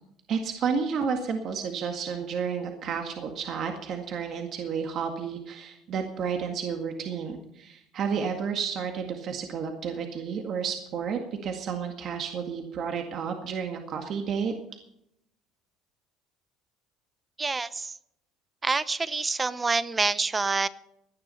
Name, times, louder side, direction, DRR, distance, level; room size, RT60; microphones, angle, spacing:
voice 1, 0.3-14.5, right 6 dB, 50° right, 4 dB, 1.9 m, -31 dB
voice 2, 17.4-18.0 18.6-20.7, right 4 dB, 20° right, 16 dB, 0.7 m, -27 dB
17.0 x 10.5 x 5.7 m, 0.77 s
cardioid pair, 120°, 0 cm